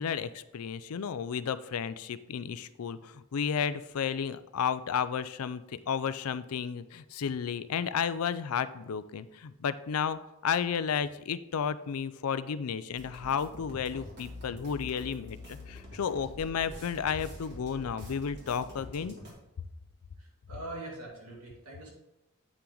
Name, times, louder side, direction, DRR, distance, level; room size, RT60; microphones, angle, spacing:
voice 1, 0.0-5.6 5.9-19.2, left 7 dB, 85° left, 14 dB, 0.4 m, -32 dB
sound 1, 13.0-19.3, left 1 dB, 50° right, 2.3 m, -46 dB
voice 2, 20.2-21.9, right 2 dB, 80° right, -3 dB, 2.7 m, -43 dB
8.5 x 5.8 x 3.9 m, 0.91 s
head